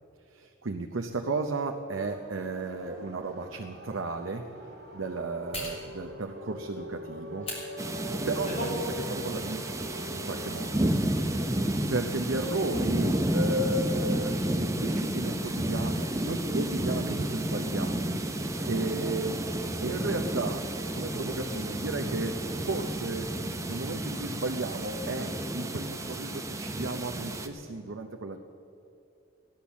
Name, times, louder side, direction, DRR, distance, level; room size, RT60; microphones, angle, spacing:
voice 1, 0.3-4.5 4.9-7.5 8.3-9.7 10.1-10.8 11.9-18.1 18.3-19.4 19.8-20.7 20.9-23.3 23.7-28.4, right 2 dB, 70° right, 4 dB, 0.7 m, -34 dB
sound 1, 2.0-10.8, equal, 50° right, 2.2 m, -44 dB
sound 2, 3.4-3.6 5.5-5.8 7.4-7.6 8.1-8.8 9.1-9.3, left 1 dB, 30° left, 3.3 m, -35 dB
sound 3, 7.8-27.5, right 1 dB, 15° right, 0.8 m, -31 dB
16.0 x 10.5 x 7.1 m, 2.7 s
head